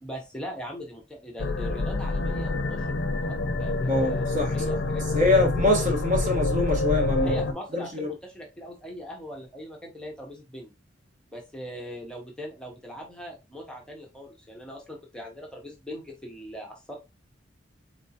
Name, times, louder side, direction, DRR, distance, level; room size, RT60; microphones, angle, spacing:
voice 1, 0.0-3.0 3.2-5.0 5.3-5.4 7.2-10.7 11.3-17.0, equal, 5° left, 0.7 m, -40 dB
sound 1, 1.4-7.5, left 2 dB, 65° left, 0.5 m, -27 dB
voice 2, 3.9-4.7 5.1-7.4 7.7-8.1, left 2 dB, 45° right, 1.2 m, -24 dB
3.9 x 3.4 x 2.8 m
head